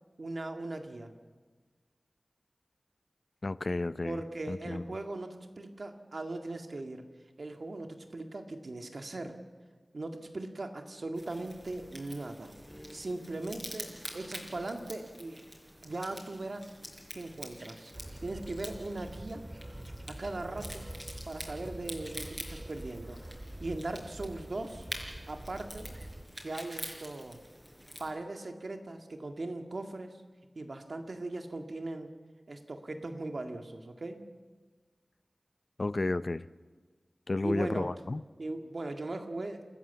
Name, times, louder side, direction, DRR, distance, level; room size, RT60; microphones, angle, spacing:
voice 1, 0.2-1.1 4.0-7.0 7.4-9.3 9.9-12.5 12.9-15.4 15.8-16.7 17.1-17.9 18.2-19.4 20.1-20.9 21.3-23.2 23.6-24.9 25.3-25.9 26.4-27.4 28.0-30.2 30.6-32.1 32.5-34.2 37.4-37.9 38.4-39.6, right 2 dB, 70° right, 5 dB, 1.9 m, -39 dB
voice 2, 3.4-4.2 4.5-4.8 35.8-36.4 37.3-38.2, left 2 dB, 50° left, 15 dB, 0.6 m, -32 dB
sound 1, 11.2-28.1, equal, 5° right, 4.9 m, -47 dB
sound 2, 17.9-26.2, right 1 dB, 25° right, 2.0 m, -45 dB
29.5 x 14.0 x 7.1 m, 1.4 s
wide cardioid pair, 55°, 0 cm